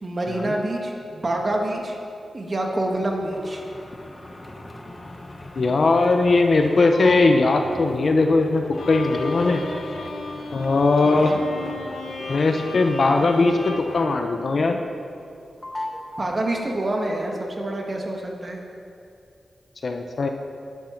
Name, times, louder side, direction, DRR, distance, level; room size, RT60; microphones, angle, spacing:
voice 1, 0.0-2.0 2.3-3.6 11.0-11.4 16.2-18.6, right 1 dB, 30° right, 1 dB, 1.9 m, -27 dB
sound 1, 3.0-14.5 14.8-15.4 15.6-16.9, left 1 dB, 20° left, 1.0 m, -39 dB
voice 2, 5.6-9.6 10.5-11.4 12.3-14.8 19.8-20.3, left 3 dB, 50° left, 4 dB, 0.9 m, -19 dB
Bowed string instrument, 8.7-15.0, left 3 dB, 85° left, 1.8 m, -35 dB
12.5 x 11.0 x 6.0 m, 2.6 s
wide cardioid pair, 130°, 0 cm